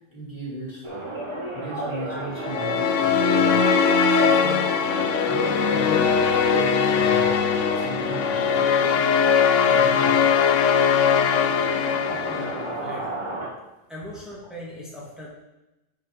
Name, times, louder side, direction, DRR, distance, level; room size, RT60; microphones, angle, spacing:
voice 1, 0.1-1.1 1.5-3.6 3.9-4.7 5.2-6.1 6.5-8.8 9.6-10.3, right 2 dB, 45° left, -5 dB, 3.0 m, -36 dB
sound 1, 0.8-13.5, right 1 dB, 25° right, 1.9 m, -33 dB
sound 2, 2.4-12.8, left 6 dB, 75° left, 1.0 m, -21 dB
voice 2, 12.3-13.2 13.9-15.3, left 1 dB, ahead, -5 dB, 1.9 m, -39 dB
11.0 x 5.2 x 4.4 m, 0.98 s
omnidirectional pair, 1.3 m